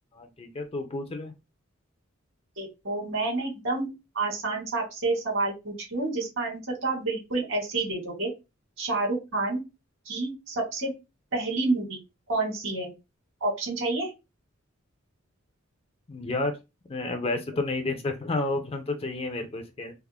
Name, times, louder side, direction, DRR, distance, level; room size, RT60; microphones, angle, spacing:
voice 1, 0.2-1.3 16.1-16.6 16.9-19.9, left 2 dB, 30° left, 6 dB, 0.5 m, -31 dB
voice 2, 2.6-3.9 4.2-8.3 8.8-9.6 10.1-10.9 11.3-12.0 12.3-12.9 13.4-14.1, right 2 dB, 65° right, 0 dB, 1.7 m, -29 dB
3.5 x 2.1 x 3.3 m, 0.25 s
head